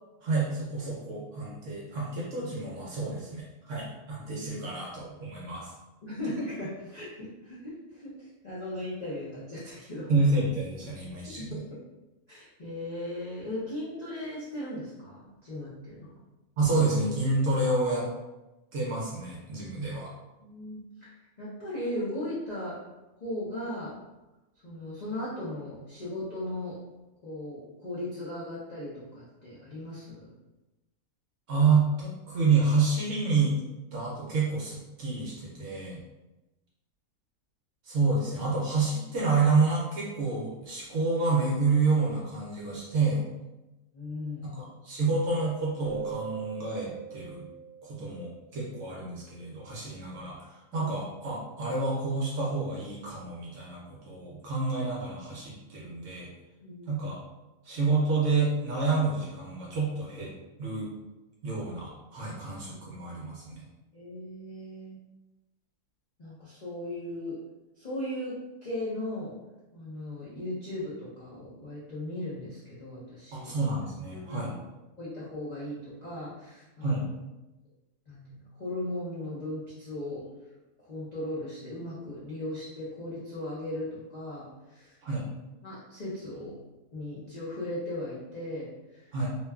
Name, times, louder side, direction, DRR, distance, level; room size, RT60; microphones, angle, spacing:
voice 1, 0.2-5.7 10.1-11.6 16.6-18.1 18.7-20.1 31.5-33.5 33.9-36.0 37.8-43.2 44.5-47.5 47.8-56.3 56.9-57.2 57.6-60.3 60.6-60.9 61.4-63.6 73.3-74.5 76.8-77.1 85.0-85.3 89.1-89.3, right 3 dB, 65° right, -5 dB, 0.8 m, -28 dB
voice 2, 6.0-10.1 11.4-11.6 12.3-16.1 20.4-21.1 21.4-22.8 23.2-24.0 24.6-26.8 27.2-30.3 43.9-44.6 50.7-50.9 56.6-56.9 63.9-65.0 66.2-67.4 67.8-69.3 69.7-73.5 74.1-74.4 75.0-77.0 78.1-80.3 80.8-85.0 85.6-86.6 86.9-89.1, left 1 dB, 70° left, -10 dB, 0.4 m, -37 dB
Keyboard (musical), 45.8-48.6, right 9 dB, 85° left, 1.3 m, -40 dB
2.9 x 2.3 x 2.2 m, 1.0 s
omnidirectional pair, 1.7 m